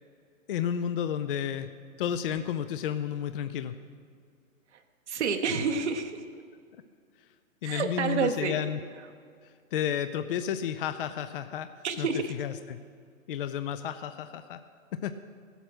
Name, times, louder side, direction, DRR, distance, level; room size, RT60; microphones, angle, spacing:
voice 1, 0.5-1.7 2.0-3.7 7.6-8.8 9.7-11.7 12.0-12.8 13.3-14.6 15.0-15.1, left 9 dB, 45° left, 10 dB, 0.5 m, -31 dB
voice 2, 5.1-6.1 7.6-8.6 11.8-12.3, right 5 dB, 55° right, 5 dB, 0.9 m, -28 dB
15.0 x 8.1 x 6.1 m, 2.2 s
hypercardioid pair, 130°, 40 cm